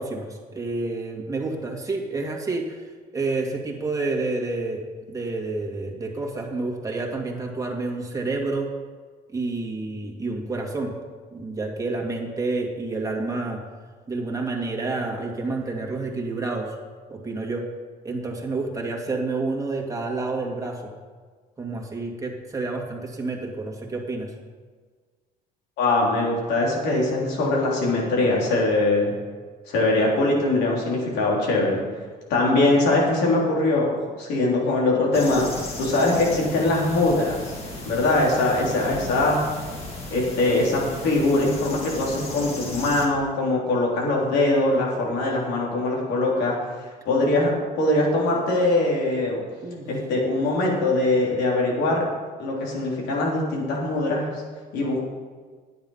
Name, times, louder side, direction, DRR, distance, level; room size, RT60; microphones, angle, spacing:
voice 1, 0.0-2.8 3.1-4.8 5.1-8.7 9.3-10.9 11.3-13.6 14.1-16.7 17.1-17.7 18.0-20.8 21.6-24.3 49.6-49.8, right 3 dB, 20° right, 0 dB, 2.2 m, -29 dB
voice 2, 25.8-29.2 29.7-31.8 32.3-35.4 35.8-37.6 37.9-39.4 40.1-46.6 47.1-47.5 47.8-49.4 49.9-52.0 52.4-54.3 54.7-55.0, left 2 dB, 90° left, -3 dB, 3.5 m, -22 dB
sound 1, 35.1-43.1, left 2 dB, 35° left, 2.5 m, -36 dB
10.5 x 9.4 x 5.6 m, 1.5 s
cardioid pair, 110°, 17 cm